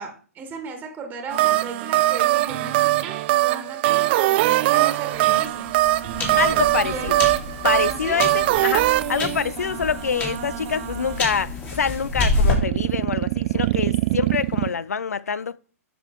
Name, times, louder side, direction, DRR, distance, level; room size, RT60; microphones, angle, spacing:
voice 1, 0.0-5.7 6.2-7.2 8.0-8.9, right 4 dB, 20° right, 1.6 m, -36 dB
sound 1, 1.3-11.2 12.4-14.7, right 17 dB, 40° right, 0.4 m, -22 dB
sound 2, 5.1-12.5, left 2 dB, 20° left, 2.3 m, -28 dB
voice 2, 6.4-7.2 7.6-15.6, left 6 dB, 75° left, 0.4 m, -26 dB
9.4 x 6.0 x 3.7 m
figure-of-eight pair, 115°, 9 cm